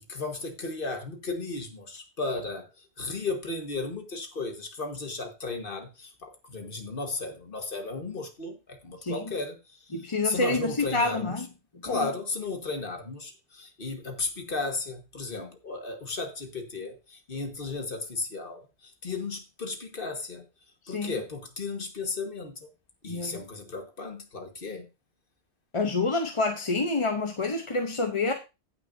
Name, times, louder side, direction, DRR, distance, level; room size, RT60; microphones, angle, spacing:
voice 1, 0.1-11.3 11.8-20.4 20.9-22.7 23.0-24.9, left 3 dB, 55° left, 1.6 m, -35 dB
voice 2, 9.0-9.3 9.9-11.5 11.9-12.1 20.9-21.1 23.1-23.4 25.7-28.3, left 3 dB, 30° left, 0.8 m, -28 dB
16.5 x 6.1 x 2.6 m
omnidirectional pair, 1.1 m